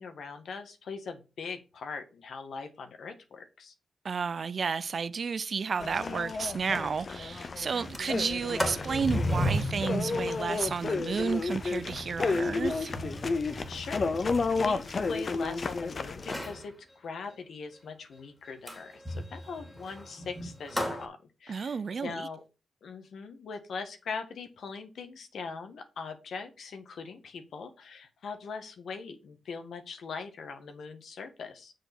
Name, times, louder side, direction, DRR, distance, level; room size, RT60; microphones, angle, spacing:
voice 1, 0.0-3.7 13.7-22.4 22.8-31.7, left 5 dB, 70° left, 1.6 m, -41 dB
voice 2, 4.0-12.9 21.5-22.3, right 5 dB, 50° right, 0.5 m, -32 dB
sound 1, 5.8-16.3, left 4 dB, 45° left, 0.8 m, -32 dB
Sliding door, 6.2-6.3 6.6-6.7 7.1-7.4 7.7-15.7 16.2-16.7 18.7-21.0, equal, 10° left, 2.7 m, -36 dB
6.8 x 5.0 x 6.1 m
cardioid pair, 90°, 0 cm